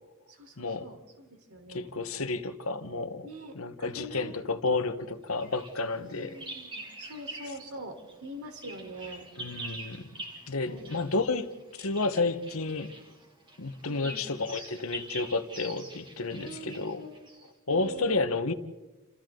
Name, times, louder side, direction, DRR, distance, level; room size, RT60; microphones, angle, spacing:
voice 1, 0.3-1.9 3.2-3.5 3.8-4.3 5.9-9.3 10.6-11.1 13.9-14.4 16.4-17.3 17.7-18.2, right 1 dB, 80° right, 4.1 m, -43 dB
voice 2, 1.7-3.3 3.5-6.4 9.4-10.1 10.5-12.9 13.6-17.0 17.7-18.5, left 3 dB, 70° left, 1.3 m, -31 dB
Bird vocalization bird call bird song, 5.4-7.7 8.0-17.5, right 2 dB, 20° right, 3.4 m, -45 dB
29.0 x 27.5 x 3.9 m
head